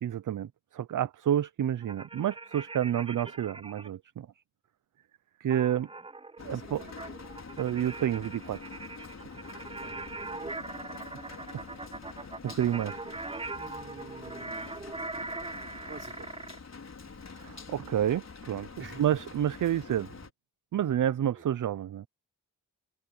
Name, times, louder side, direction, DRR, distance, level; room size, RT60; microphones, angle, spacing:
voice 1, 0.0-4.3 5.4-5.9 6.4-6.8 7.6-8.6 11.5-11.7 12.4-13.0 17.4-18.7 19.0-20.1 20.7-22.1, right 10 dB, 65° right, 0.6 m, -29 dB
sound 1, 1.8-3.9 5.5-16.6, right 3 dB, 15° right, 0.6 m, -41 dB
Rain, 6.4-20.3, left 4 dB, 50° left, 5.1 m, -46 dB
voice 2, 6.4-7.2 9.5-10.5 13.6-14.7 15.9-16.6 17.0-17.3 18.8-19.2 19.7-19.8 21.4-21.5, right 3 dB, 35° right, 5.4 m, -50 dB
open air
wide cardioid pair, 85°, 34 cm